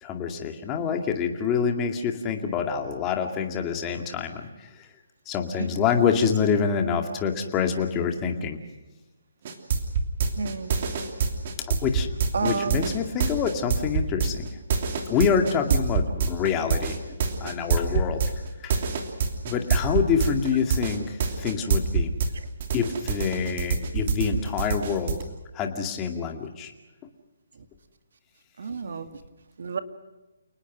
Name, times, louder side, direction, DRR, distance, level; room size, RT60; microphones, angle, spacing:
voice 1, 0.0-4.9 5.3-8.6 11.6-12.1 12.4-14.5 15.1-18.2 18.6-18.7 19.4-22.1 22.7-25.2 25.5-26.7, left 6 dB, 15° left, 4 dB, 2.2 m, -26 dB
sound 1, 9.4-22.3 22.6-25.2, right 5 dB, 35° right, 3.1 m, -25 dB
voice 2, 10.4-10.7 12.3-12.9 28.6-29.1 29.6-29.8, right 4 dB, 60° right, 9 dB, 2.3 m, -29 dB
29.5 x 19.5 x 6.2 m, 1.1 s
hypercardioid pair, 170°, 0 cm